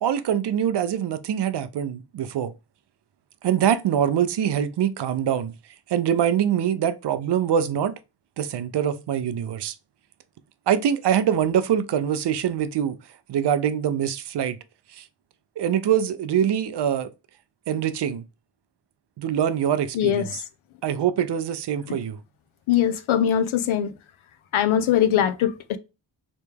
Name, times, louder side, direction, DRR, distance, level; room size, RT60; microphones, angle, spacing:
voice 1, 0.0-2.5 3.4-5.5 5.9-7.9 8.4-9.7 10.7-13.0 13.3-14.6 14.9-15.0 15.6-17.1 17.7-18.2 19.2-20.4 20.8-22.2, right 9 dB, 60° right, 0.5 m, -24 dB
voice 2, 19.9-20.3 22.7-23.9 24.5-25.8, left 10 dB, 80° left, 0.6 m, -21 dB
3.3 x 3.0 x 3.3 m
wide cardioid pair, 115°, 49 cm